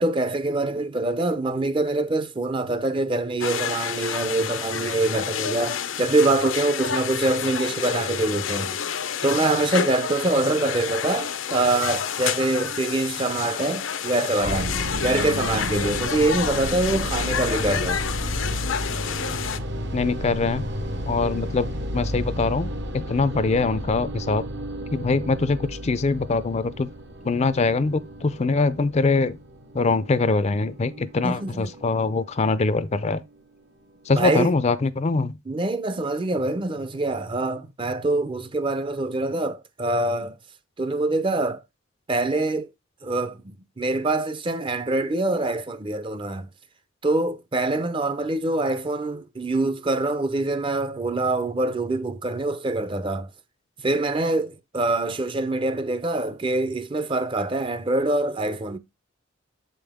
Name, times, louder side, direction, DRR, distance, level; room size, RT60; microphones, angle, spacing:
voice 1, 0.0-8.8 9.2-18.0 31.2-31.7 34.1-34.5 35.5-40.4 40.8-41.6 42.1-42.7 43.0-46.5 47.0-53.3 53.8-58.8, right 2 dB, 25° right, 0.5 m, -25 dB
sound 1, 3.4-19.6, left 8 dB, 75° left, 0.6 m, -29 dB
sound 2, 14.4-32.8, equal, 60° right, 1.0 m, -33 dB
voice 2, 19.9-20.6 21.1-21.7 21.9-24.4 24.9-26.9 27.2-29.4 29.7-33.2 34.1-35.4, left 3 dB, 35° left, 0.4 m, -23 dB
7.3 x 5.3 x 3.5 m
head